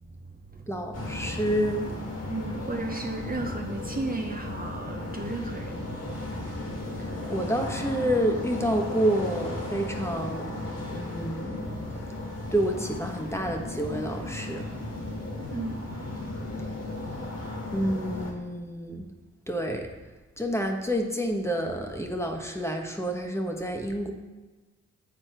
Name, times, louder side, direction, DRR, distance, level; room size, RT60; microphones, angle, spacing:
voice 1, 0.7-1.9 7.3-10.6 10.9-11.8 12.5-14.7 17.7-19.1 19.5-19.9 20.4-24.1, equal, 10° left, 2 dB, 1.3 m, -28 dB
sound 1, 0.9-18.3, left 1 dB, 55° left, 2.0 m, -35 dB
voice 2, 2.3-5.7 15.5-15.7, right 2 dB, 30° right, 2 dB, 0.7 m, -34 dB
8.3 x 4.3 x 4.4 m, 1.3 s
supercardioid pair, 40°, 30 cm